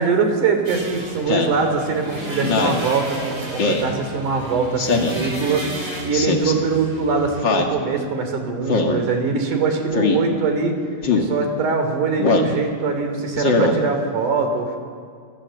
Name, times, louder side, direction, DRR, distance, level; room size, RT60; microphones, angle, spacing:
voice 1, 0.0-5.7 6.0-10.8 11.1-14.8, right 4 dB, 75° right, 5 dB, 4.7 m, -22 dB
sound 1, 0.6-7.5, equal, 20° right, 6.4 m, -33 dB
Speech synthesizer, 1.3-1.6 2.4-2.8 3.6-3.9 4.8-5.2 6.1-6.5 7.4-7.7 8.7-9.0 9.9-10.2 11.0-11.3 12.2-12.5 13.4-13.7, left 4 dB, 40° left, 2.3 m, -20 dB
28.0 x 21.0 x 7.8 m, 2.1 s
omnidirectional pair, 3.6 m